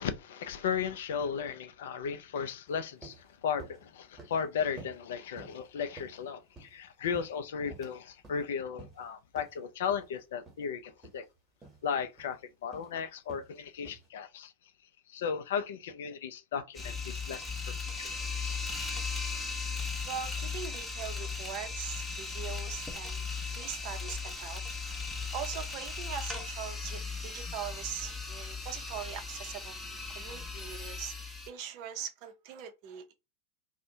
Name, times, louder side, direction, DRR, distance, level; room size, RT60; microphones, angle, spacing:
voice 1, 0.0-11.2 11.8-14.5 15.1-17.4 18.0-18.1 18.4-18.6, left 7 dB, 60° left, 0.4 m, -35 dB
sound 1, 2.7-2.8 3.0-3.2 3.6-3.8 4.2-4.4 4.8-5.0 5.4-5.6 6.0-6.8 7.1-8.0 8.2-8.4 8.8-9.0 9.4-9.5 9.9-10.1 10.5-10.6 11.0-11.2 11.6-11.8 12.2-12.4 12.7-12.9 13.3-13.5 13.8-14.1, right 3 dB, 15° right, 1.0 m, -50 dB
sound 2, 16.7-31.5, left 4 dB, 10° left, 0.6 m, -37 dB
voice 2, 20.0-23.2 23.5-24.6 25.0-25.1 25.3-29.8 30.1-31.1 31.5-33.1, right 9 dB, 45° right, 0.5 m, -41 dB
2.5 x 2.0 x 2.7 m
figure-of-eight pair, 90°, 0 cm